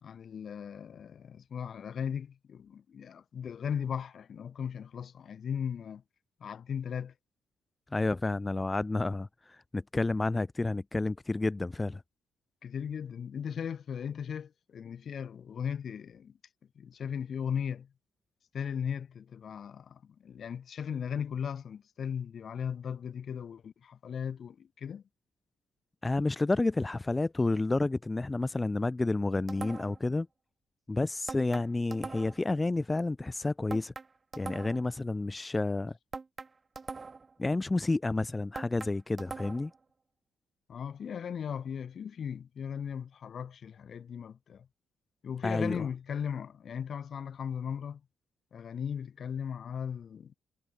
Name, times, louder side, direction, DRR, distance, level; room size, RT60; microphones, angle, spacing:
voice 1, 0.0-6.0 6.4-7.1 12.6-16.3 16.8-17.9 18.5-25.0 40.7-44.7 45.2-48.0 48.5-50.3, left 7 dB, 55° left, 2.3 m, -37 dB
voice 2, 7.9-9.3 9.7-12.0 26.0-30.3 30.9-33.9 34.4-35.9 37.4-39.7 45.4-45.9, left 2 dB, 20° left, 2.1 m, -30 dB
sound 1, 29.5-30.1 31.3-32.5 33.7-34.9 36.1-37.3 38.5-39.8, right 4 dB, 30° right, 2.9 m, -42 dB
cardioid pair, 85°, 0 cm